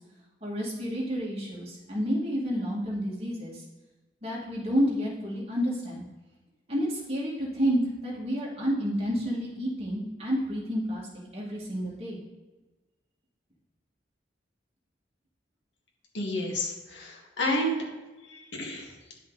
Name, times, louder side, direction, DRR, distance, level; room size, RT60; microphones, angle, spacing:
voice 1, 0.4-3.6 4.2-6.0 6.7-11.0 11.3-12.2, equal, 35° right, -5 dB, 2.4 m, -30 dB
voice 2, 16.1-17.8 18.3-18.9, left 1 dB, 90° left, -1 dB, 2.0 m, -30 dB
10.5 x 6.0 x 4.1 m, 1.2 s
head